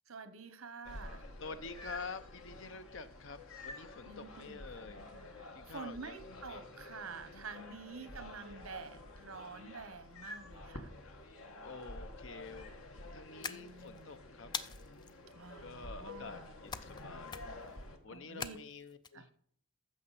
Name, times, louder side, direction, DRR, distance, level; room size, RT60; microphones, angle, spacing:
voice 1, 0.1-1.2 4.0-10.9 13.5-14.1 15.3-16.5 18.1-18.6 19.1-19.3, right 4 dB, 80° right, 11 dB, 1.1 m, -49 dB
sound 1, 0.8-18.0, left 2 dB, 75° left, 1.3 m, -50 dB
voice 2, 1.4-5.0 5.5-6.2 6.4-6.6 11.6-12.7 13.1-14.5 15.6-17.7 18.0-19.3, left 4 dB, 60° left, 11 dB, 0.7 m, -48 dB
sound 2, 13.4-14.0 14.5-15.1 16.7-17.0 17.3-17.7 18.4-19.1, left 5 dB, 20° left, 0.4 m, -42 dB
14.5 x 6.3 x 4.1 m, 0.63 s
head